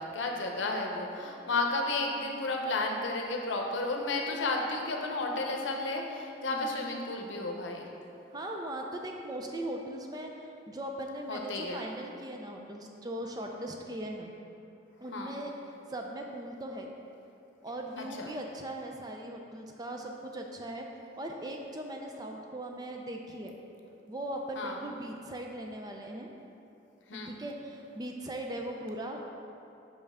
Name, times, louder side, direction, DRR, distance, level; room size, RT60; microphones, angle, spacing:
voice 1, 0.0-7.9 11.3-11.8 15.1-15.3 18.2-18.3 24.6-24.8 27.1-27.3, left 2 dB, 90° left, 1 dB, 0.7 m, -32 dB
voice 2, 6.5-6.8 8.3-10.3 10.7-14.3 15.0-15.5 15.9-16.9 17.6-20.9 21.2-23.5 24.1-26.3 27.1-29.2, right 1 dB, 20° right, 2 dB, 0.4 m, -39 dB
5.6 x 5.4 x 3.5 m, 2.7 s
head